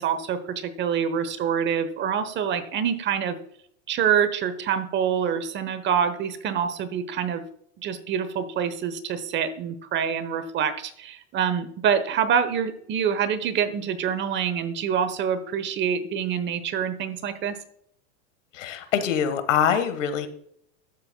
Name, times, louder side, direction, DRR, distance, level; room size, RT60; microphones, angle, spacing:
voice 1, 0.0-3.4 3.9-7.4 7.8-17.6, right 8 dB, 30° right, 11 dB, 1.0 m, -26 dB
voice 2, 18.5-20.3, left 8 dB, 90° left, 11 dB, 1.4 m, -24 dB
12.0 x 8.1 x 2.2 m, 0.67 s
supercardioid pair, 130°, 37 cm